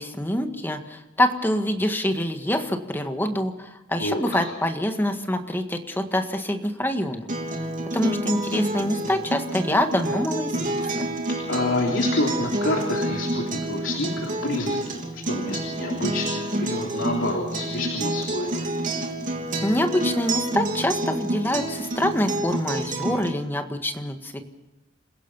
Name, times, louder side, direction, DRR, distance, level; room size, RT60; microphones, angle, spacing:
voice 1, 0.0-7.3 7.9-11.0 19.6-24.5, left 1 dB, 10° left, 6 dB, 1.7 m, -25 dB
voice 2, 4.0-4.4 11.5-18.7, left 1 dB, 75° left, 0 dB, 3.3 m, -28 dB
Acoustic guitar, 7.3-23.3, right 1 dB, 40° right, 3.2 m, -28 dB
28.0 x 16.5 x 5.6 m, 1.1 s
head